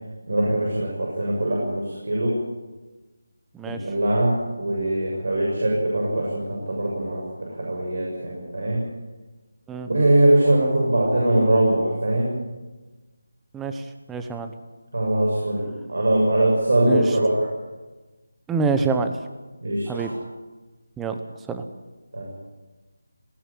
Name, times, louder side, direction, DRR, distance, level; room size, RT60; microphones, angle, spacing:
voice 1, 0.3-2.4 3.7-8.9 9.9-12.3 14.9-17.5 19.6-20.1 22.1-22.3, right 1 dB, 65° right, -2 dB, 7.6 m, -22 dB
voice 2, 3.5-3.8 9.7-9.9 13.5-14.5 16.9-17.0 18.5-19.2 19.9-20.1 21.0-21.2 21.5-21.6, right 4 dB, 5° right, 7 dB, 1.0 m, -26 dB
20.0 x 16.5 x 9.2 m, 1.2 s
figure-of-eight pair, 170°, 0 cm